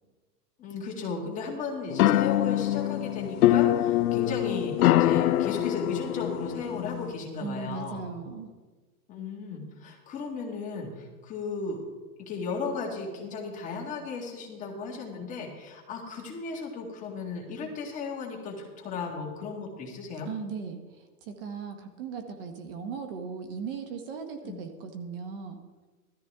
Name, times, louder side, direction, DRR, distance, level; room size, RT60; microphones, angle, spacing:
voice 1, 0.6-8.0 9.1-11.8 12.3-20.3 24.4-24.6, left 4 dB, 15° left, -1 dB, 1.8 m, -35 dB
sound 1, 1.9-7.1, left 13 dB, 65° left, 0.6 m, -24 dB
voice 2, 7.4-8.5 20.3-25.6, right 5 dB, 35° right, 6 dB, 1.2 m, -38 dB
16.5 x 13.5 x 3.5 m, 1.3 s
supercardioid pair, 165°, 47 cm